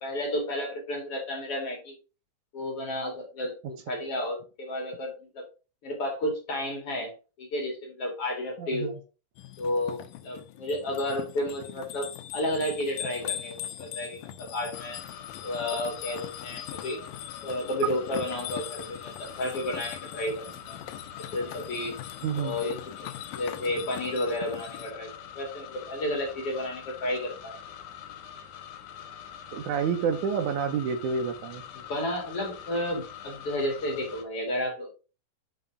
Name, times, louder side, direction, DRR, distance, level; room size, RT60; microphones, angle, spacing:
voice 1, 0.0-2.0 2.5-5.4 5.8-7.1 7.4-9.0 9.6-15.0 15.4-17.0 17.4-20.8 21.2-22.0 22.4-25.1 25.3-27.6 31.7-34.9, left 1 dB, 45° left, 1 dB, 2.7 m, -32 dB
voice 2, 8.6-9.0 22.2-22.6 29.5-31.6, right 6 dB, 75° right, 8 dB, 1.9 m, -29 dB
sound 1, 9.4-24.9, left 12 dB, 85° left, 2.4 m, -41 dB
sound 2, 14.7-34.3, left 9 dB, 70° left, 2.2 m, -45 dB
5.8 x 5.2 x 4.8 m, 0.32 s
omnidirectional pair, 4.0 m